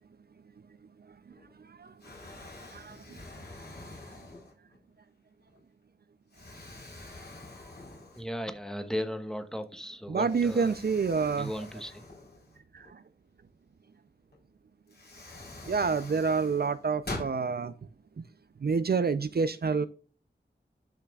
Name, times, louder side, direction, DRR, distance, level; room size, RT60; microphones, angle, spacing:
Explosion, 1.3-1.7 2.0-4.8 5.4-5.6 6.3-8.6 8.9-9.0 10.2-12.9 14.3-14.4 14.9-17.4, left 2 dB, 60° left, 3.9 m, -45 dB
voice 1, 8.1-10.8 11.4-12.1, equal, 5° left, 8 dB, 1.2 m, -36 dB
voice 2, 10.1-11.5 15.7-17.7 18.6-19.9, right 5 dB, 55° right, 13 dB, 0.5 m, -27 dB
11.5 x 5.8 x 2.4 m, 0.39 s
wide cardioid pair, 65°, 19 cm